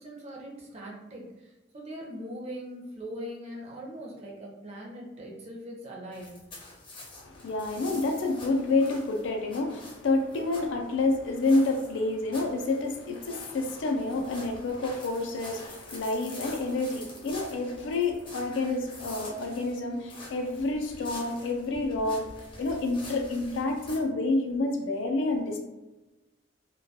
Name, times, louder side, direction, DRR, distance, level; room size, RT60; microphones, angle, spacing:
voice 1, 0.0-6.4, equal, 35° right, -1 dB, 0.5 m, -41 dB
sound 1, 6.1-24.0, left 2 dB, 25° left, 0.6 m, -46 dB
voice 2, 7.2-22.2 22.6-25.6, left 2 dB, 75° left, 3 dB, 0.4 m, -28 dB
2.2 x 2.2 x 2.7 m, 1.1 s
head